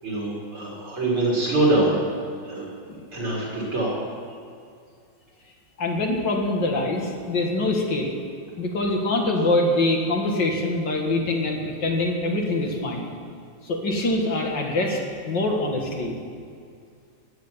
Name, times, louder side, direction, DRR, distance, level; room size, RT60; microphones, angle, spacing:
voice 1, 0.0-2.0 2.4-2.7 3.1-4.0, right 2 dB, 80° right, -6 dB, 5.7 m, -24 dB
voice 2, 5.8-8.1 8.6-13.1 13.6-16.1, left 2 dB, 60° left, 0 dB, 2.4 m, -24 dB
16.0 x 10.5 x 7.3 m, 2.3 s
omnidirectional pair, 2.3 m